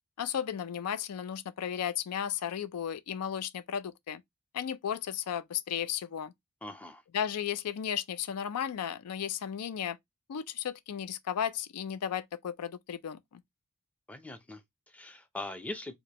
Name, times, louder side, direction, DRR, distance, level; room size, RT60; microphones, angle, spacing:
voice 1, 0.2-4.2 4.5-6.3 7.1-10.0 10.3-13.4, left 9 dB, 85° left, 0.4 m, -34 dB
voice 2, 6.6-7.0 14.1-16.0, left 2 dB, 5° left, 0.5 m, -42 dB
4.8 x 2.1 x 2.8 m
head